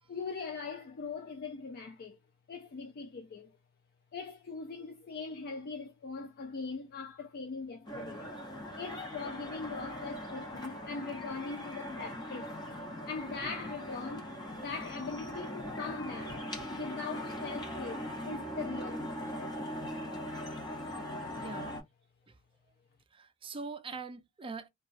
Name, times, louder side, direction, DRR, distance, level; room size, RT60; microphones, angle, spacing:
voice 1, 0.1-2.2 2.5-3.5 4.1-8.3 8.8-12.5 13.1-14.3 14.6-16.4 16.7-19.5, left 4 dB, 45° left, 0.4 m, -41 dB
sound 1, 7.8-21.8, equal, 20° left, 0.9 m, -40 dB
voice 2, 21.3-21.8 22.3-22.4 23.1-24.7, right 4 dB, 25° right, 0.4 m, -43 dB
3.1 x 2.3 x 2.4 m
head